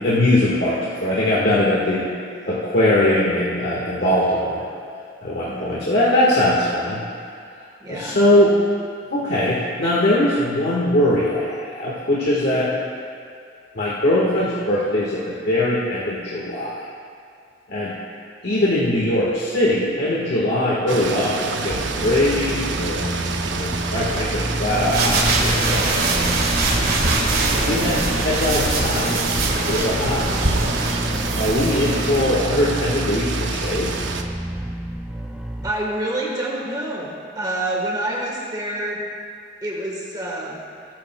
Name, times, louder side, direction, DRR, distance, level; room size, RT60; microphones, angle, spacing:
voice 1, 0.0-2.1 2.5-4.7 5.2-7.0 7.9-8.6 9.1-12.7 13.7-16.8 17.7-17.9 18.4-23.1 23.5-26.6 27.5-29.2 29.7-30.5 31.4-33.9, left 1 dB, 60° left, -7 dB, 1.5 m, -21 dB
voice 2, 5.4-5.9 7.8-8.2 27.6-28.2 35.6-39.0 39.6-40.6, right 1 dB, 20° right, -3 dB, 1.4 m, -28 dB
sound 1, 20.9-34.2, right 4 dB, 70° right, 0.7 m, -28 dB
sound 2, 21.7-35.7, right 1 dB, 5° right, 0.5 m, -29 dB
sound 3, 24.7-32.2, right 2 dB, 55° right, 1.7 m, -23 dB
20.5 x 8.9 x 2.3 m, 2.3 s
head